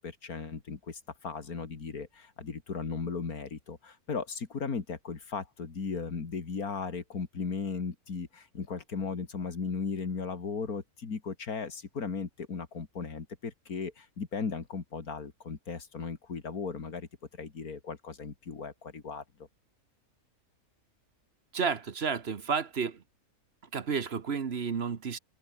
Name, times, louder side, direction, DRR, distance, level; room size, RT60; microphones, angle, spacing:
voice 1, 0.0-17.1 17.4-19.2, left 5 dB, 75° left, 2.8 m, -36 dB
voice 2, 21.5-23.0 23.7-25.2, right 6 dB, 45° right, 1.3 m, -31 dB
open air
omnidirectional pair, 1.6 m